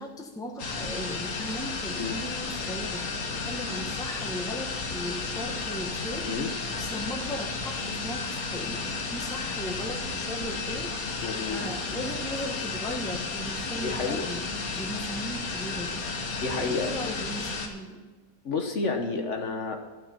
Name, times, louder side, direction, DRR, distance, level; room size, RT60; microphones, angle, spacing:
voice 1, 0.0-10.9 11.5-14.4 14.8-16.0 16.6-18.1, left 1 dB, 5° left, 2 dB, 1.0 m, -37 dB
sound 1, 0.6-17.7, left 4 dB, 80° left, 1.8 m, -33 dB
voice 2, 11.2-11.6 13.7-14.3 16.3-16.9 18.4-19.8, left 4 dB, 55° left, 4 dB, 1.4 m, -30 dB
12.5 x 6.0 x 8.8 m, 1.2 s
omnidirectional pair, 1.5 m